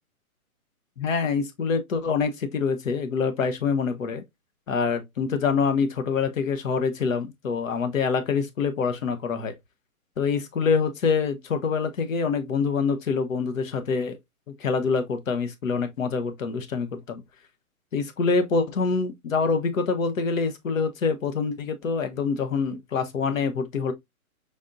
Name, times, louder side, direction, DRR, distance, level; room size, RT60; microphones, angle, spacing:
voice 1, 1.0-4.2 4.7-9.5 10.2-14.2 14.6-17.2 17.9-23.9, left 5 dB, 65° left, 1.0 m, -25 dB
5.2 x 3.9 x 2.4 m
hypercardioid pair, 175°, 44 cm